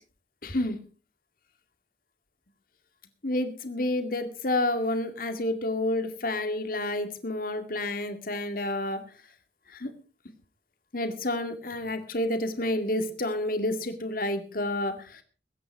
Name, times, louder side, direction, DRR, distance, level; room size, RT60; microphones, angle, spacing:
voice 1, 0.4-0.8 3.2-9.0 9.7-9.9 10.9-15.2, left 1 dB, 55° left, 8 dB, 2.1 m, -29 dB
21.0 x 9.8 x 4.7 m, 0.37 s
head